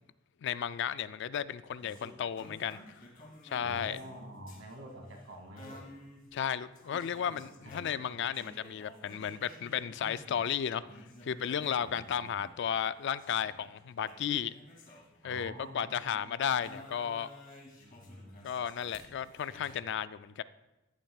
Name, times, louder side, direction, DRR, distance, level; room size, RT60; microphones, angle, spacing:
voice 1, 0.4-3.0 3.4-4.0 6.3-10.8 11.2-14.5 15.2-17.3 18.4-20.4, left 8 dB, 60° left, 15 dB, 0.3 m, -34 dB
sound 1, 1.8-10.5 10.8-16.1 16.6-19.8, left 1 dB, 45° left, 2.5 m, -53 dB
voice 2, 3.6-5.9 6.8-7.0 7.3-7.7 11.7-12.3 15.2-16.6 17.8-18.5, equal, 80° right, 1 dB, 2.4 m, -48 dB
14.5 x 10.5 x 2.4 m, 0.99 s
head